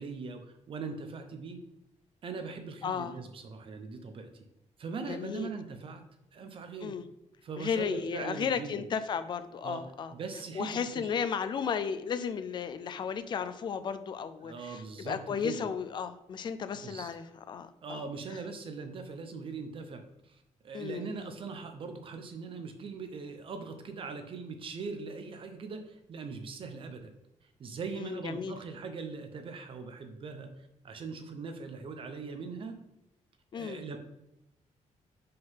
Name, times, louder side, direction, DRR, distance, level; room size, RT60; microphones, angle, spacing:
voice 1, 0.0-1.6 2.2-4.5 4.8-6.1 6.3-7.0 7.4-8.8 9.6-9.8 10.1-11.1 14.4-15.6 16.8-17.1 17.8-32.8 33.5-34.0, right 4 dB, 45° right, 7 dB, 0.6 m, -41 dB
voice 2, 2.8-3.1 5.1-5.5 6.8-7.1 7.6-10.1 10.5-18.0 20.7-21.3 28.0-28.5 33.5-33.8, left 7 dB, 35° left, 11 dB, 0.4 m, -34 dB
5.4 x 3.7 x 5.6 m, 0.90 s
wide cardioid pair, 180°, 13 cm